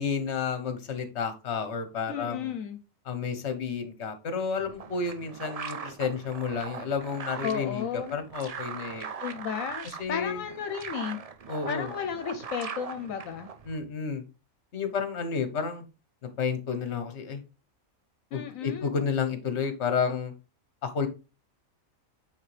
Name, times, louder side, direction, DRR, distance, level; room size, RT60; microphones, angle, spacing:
voice 1, 0.0-2.5 3.0-9.1 9.8-10.4 11.5-11.9 13.7-14.2 14.7-15.8 16.2-17.4 18.3-20.3 20.8-21.1, left 6 dB, 55° left, 9 dB, 1.3 m, -31 dB
voice 2, 2.1-2.8 7.4-8.2 9.2-11.2 11.7-13.5 18.3-18.9, left 7 dB, 80° left, 8 dB, 1.1 m, -34 dB
sound 1, 4.5-13.8, right 6 dB, 55° right, 0.4 m, -40 dB
8.6 x 3.5 x 3.3 m, 0.30 s
omnidirectional pair, 1.4 m